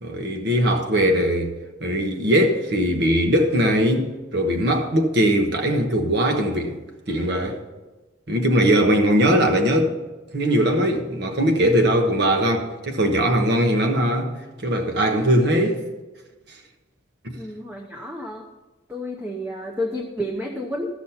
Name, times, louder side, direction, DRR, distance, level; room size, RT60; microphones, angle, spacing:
voice 1, 0.0-1.5 1.8-6.8 7.1-7.6 8.3-9.9 10.3-14.3 14.6-15.8 17.2-17.4, equal, 60° right, 1.2 m, -20 dB
voice 2, 17.4-18.5 18.9-20.9, left 1 dB, 10° right, 0.7 m, -30 dB
13.5 x 6.3 x 5.7 m
head